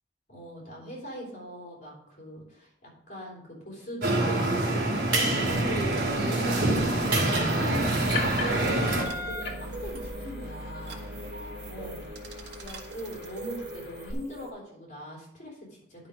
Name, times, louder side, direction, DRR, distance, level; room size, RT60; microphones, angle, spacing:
voice 1, 0.3-4.7 5.1-11.1 11.7-12.1 12.3-16.1, equal, 45° left, -2 dB, 3.6 m, -41 dB
sound 1, 4.0-9.0, right 2 dB, 65° right, 2.5 m, -25 dB
sound 2, 5.4-14.1, left 3 dB, 65° left, 2.0 m, -41 dB
sound 3, 7.2-14.5, right 1 dB, 85° right, 1.4 m, -40 dB
10.5 x 5.7 x 5.0 m, 0.75 s
head